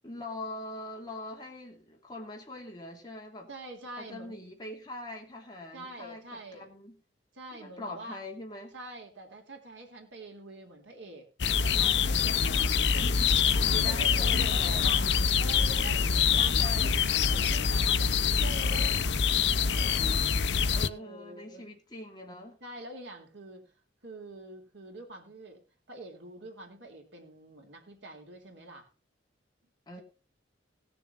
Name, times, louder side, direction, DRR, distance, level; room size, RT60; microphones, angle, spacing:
voice 1, 0.0-3.5 4.0-7.0 7.5-8.7 12.9-15.2 16.3-17.0 20.7-22.6 29.9-30.0, left 2 dB, 20° left, 2.9 m, -43 dB
voice 2, 3.5-4.3 5.7-6.7 7.3-8.2 8.7-11.3 11.6-13.1 13.8-15.1 15.3-17.0 17.3-20.3 20.9-21.7 22.6-23.7 24.0-28.9, right 2 dB, 70° right, 3.5 m, -45 dB
sound 1, 11.4-20.9, left 6 dB, 60° left, 0.6 m, -25 dB
18.5 x 7.1 x 4.2 m
head